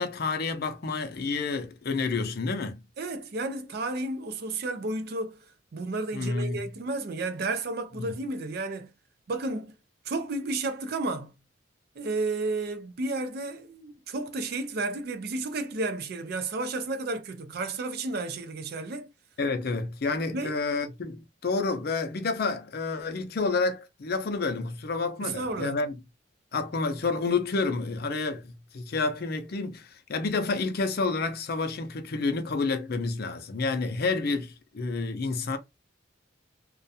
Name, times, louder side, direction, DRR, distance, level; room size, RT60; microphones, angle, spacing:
voice 1, 0.0-2.8 6.1-6.7 8.0-8.2 19.4-26.0 26.5-35.6, left 3 dB, 55° left, 0.5 m, -29 dB
voice 2, 3.0-5.4 5.7-8.9 9.3-9.7 10.1-11.3 12.0-19.1 20.3-20.6 25.2-25.8, right 2 dB, 55° right, 0.4 m, -32 dB
2.3 x 2.2 x 2.6 m
head